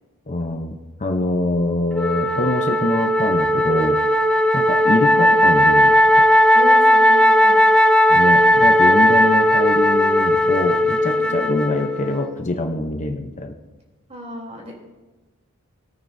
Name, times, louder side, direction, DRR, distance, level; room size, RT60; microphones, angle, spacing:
voice 1, 0.3-4.0 4.5-6.3 8.1-13.5, left 2 dB, 35° left, 4 dB, 0.8 m, -24 dB
Wind instrument woodwind instrument, 1.9-12.3, equal, 5° left, 0.3 m, -16 dB
voice 2, 6.5-7.6 11.0-11.4 14.1-14.7, equal, 30° right, -1 dB, 3.8 m, -33 dB
21.0 x 9.2 x 2.7 m, 1.2 s
head